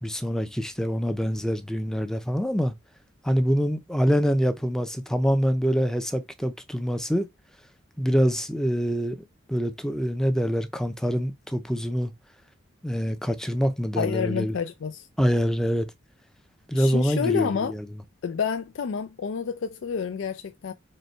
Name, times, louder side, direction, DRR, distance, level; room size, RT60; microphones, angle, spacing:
voice 1, 0.0-2.7 3.2-7.3 8.0-9.2 9.5-12.1 12.8-14.5 15.2-15.9 16.7-17.8, equal, 5° left, 0.5 m, -25 dB
voice 2, 14.0-15.1 16.7-17.7 18.2-20.7, left 6 dB, 70° left, 0.4 m, -29 dB
5.2 x 2.3 x 4.4 m
head